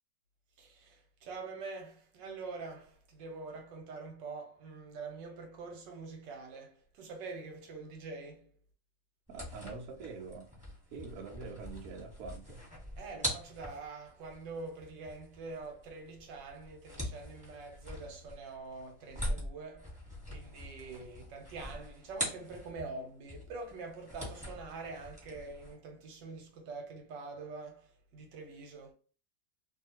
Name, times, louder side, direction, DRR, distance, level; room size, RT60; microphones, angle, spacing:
voice 1, 0.6-8.5 13.0-20.0 20.3-28.9, right 3 dB, 80° right, 1.4 m, -45 dB
sound 1, 9.3-23.0 23.3-25.7, equal, 5° right, 1.4 m, -43 dB
voice 2, 9.3-10.5 10.9-12.6, right 4 dB, 65° right, 1.0 m, -45 dB
2.7 x 2.7 x 2.8 m
omnidirectional pair, 1.9 m